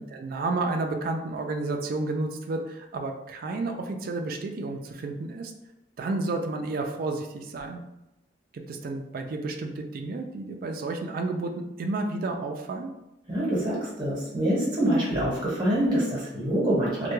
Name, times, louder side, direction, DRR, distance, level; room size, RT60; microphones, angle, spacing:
voice 1, 0.0-5.5 6.0-7.8 8.5-12.9, right 2 dB, 55° right, 4 dB, 0.3 m, -31 dB
voice 2, 13.3-17.1, right 1 dB, 25° right, -7 dB, 1.1 m, -25 dB
2.2 x 2.2 x 3.0 m, 0.92 s
head